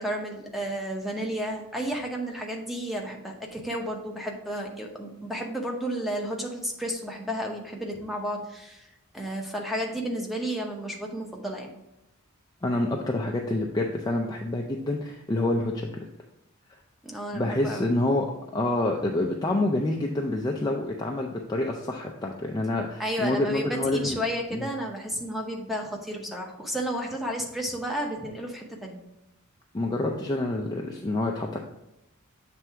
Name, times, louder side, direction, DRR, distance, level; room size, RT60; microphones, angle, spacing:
voice 1, 0.0-8.9 9.1-11.7 17.0-17.8 23.0-29.0, equal, ahead, 0 dB, 0.8 m, -32 dB
voice 2, 12.6-16.1 17.3-18.3 18.5-24.2 24.5-24.7 29.7-31.6, left 2 dB, 20° left, 0 dB, 0.4 m, -27 dB
7.6 x 3.4 x 4.5 m, 0.88 s
head